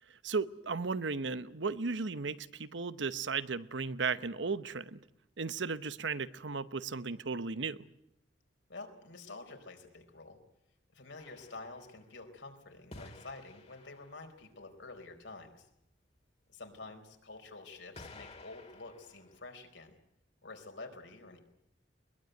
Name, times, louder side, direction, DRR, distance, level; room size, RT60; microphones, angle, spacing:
voice 1, 0.1-5.0 5.4-7.9, right 4 dB, 75° right, 1.0 m, -35 dB
voice 2, 8.7-10.4 10.9-15.7 16.5-20.0 20.4-21.4, left 3 dB, 75° left, 4.4 m, -49 dB
sound 1, 11.2-12.3 12.9-14.4 16.7-16.8 18.0-19.6, left 2 dB, 35° left, 2.4 m, -53 dB
22.0 x 21.5 x 9.3 m
head